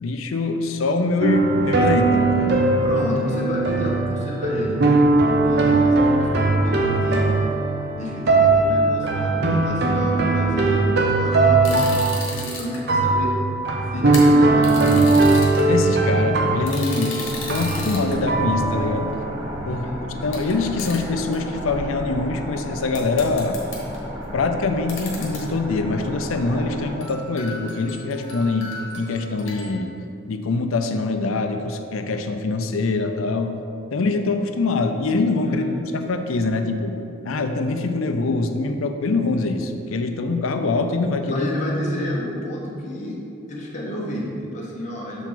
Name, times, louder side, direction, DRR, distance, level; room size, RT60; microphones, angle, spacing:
voice 1, 0.0-2.6 15.6-19.2 19.7-19.9 20.2-23.6 24.3-29.9 30.3-33.6 33.9-35.6 35.9-37.0 37.2-41.5, left 3 dB, 85° left, 7 dB, 0.5 m, -24 dB
sound 1, 1.2-19.8, right 2 dB, 55° right, 0.6 m, -20 dB
voice 2, 2.8-4.8 5.2-7.3 8.0-13.3 13.9-14.8 15.2-15.4 19.6-20.0 35.4-35.7 41.2-43.1 43.5-45.3, left 1 dB, 35° left, -4 dB, 1.1 m, -30 dB
sound 2, 11.6-12.8 14.0-15.6 16.7-18.2 19.1-19.2 20.3-20.5 20.8-21.0 21.3-21.4 22.9-24.0 24.9-25.4 25.7-25.8 26.2-26.5 27.0-29.8, left 3 dB, 65° left, 1.3 m, -35 dB
sound 3, 17.2-26.9, equal, 20° right, 1.4 m, -34 dB
6.9 x 4.6 x 3.9 m, 2.7 s
head